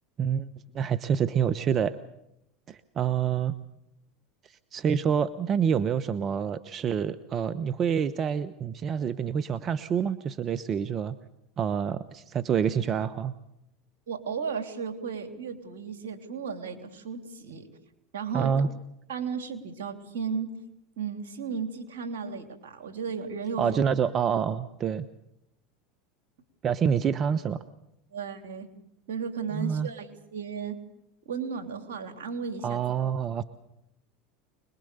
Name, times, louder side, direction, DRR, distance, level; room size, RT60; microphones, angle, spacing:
voice 1, 0.7-2.0 2.7-3.5 4.5-11.1 11.6-13.3 18.3-18.7 23.6-25.0 26.6-27.6 29.5-29.9 32.6-33.4, right 7 dB, 40° right, 14 dB, 1.0 m, -27 dB
voice 2, 14.1-17.7 18.1-18.7 19.1-20.5 21.0-23.8 28.1-28.7 29.1-30.7 31.2-32.9, right 6 dB, 75° right, 6 dB, 3.3 m, -34 dB
25.5 x 21.5 x 6.9 m, 0.81 s
hypercardioid pair, 90°, 0 cm